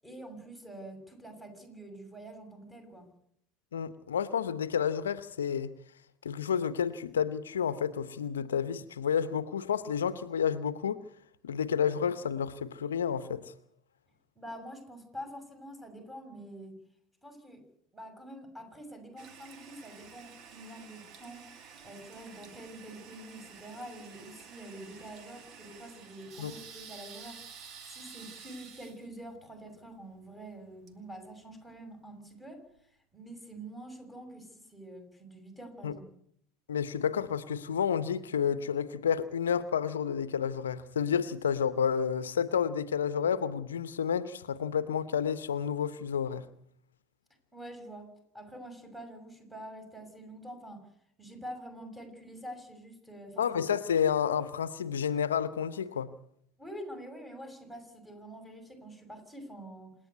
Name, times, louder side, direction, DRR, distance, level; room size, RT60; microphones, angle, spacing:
voice 1, 0.0-3.1 14.3-16.8 17.2-17.6 17.9-21.5 21.8-32.6 33.1-36.0 47.5-48.1 48.3-50.9 51.2-53.5 56.6-60.0, right 1 dB, 5° right, 6.7 m, -46 dB
voice 2, 3.7-5.7 6.2-11.0 11.4-13.5 26.4-26.5 35.8-36.0 36.7-46.4 53.4-56.1, left 7 dB, 80° left, 0.8 m, -30 dB
Toilet flush, 19.2-31.8, right 6 dB, 45° right, 2.5 m, -51 dB
27.0 x 10.0 x 9.5 m
figure-of-eight pair, 75°, 0 cm